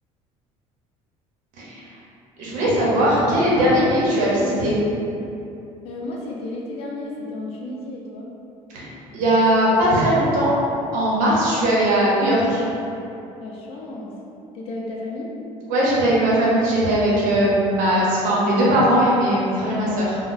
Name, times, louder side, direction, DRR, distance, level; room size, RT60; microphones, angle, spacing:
voice 1, 1.6-2.0 2.4-4.8 8.7-10.5 10.9-12.6 15.7-20.2, right 1 dB, 85° right, -7 dB, 0.8 m, -19 dB
voice 2, 5.8-8.3 13.4-14.1 14.5-15.3, left 2 dB, 50° left, -3 dB, 0.5 m, -33 dB
3.7 x 2.1 x 2.6 m, 2.8 s
cardioid pair, 170°, 13 cm